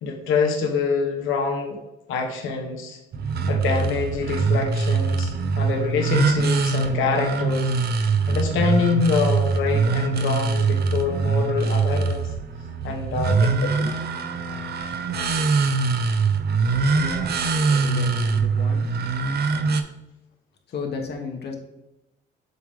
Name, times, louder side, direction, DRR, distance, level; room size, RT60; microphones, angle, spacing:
voice 1, 0.0-1.8 2.1-3.0 3.5-7.7 8.0-12.3 12.8-13.9, left 4 dB, 90° left, 2 dB, 1.1 m, -25 dB
sound 1, 3.1-19.8, right 4 dB, 55° right, 0.6 m, -23 dB
voice 2, 16.7-17.4 17.7-18.9 20.7-21.6, left 4 dB, 55° left, 2 dB, 1.1 m, -34 dB
7.7 x 3.4 x 3.5 m, 0.91 s
cardioid pair, 90°, 20 cm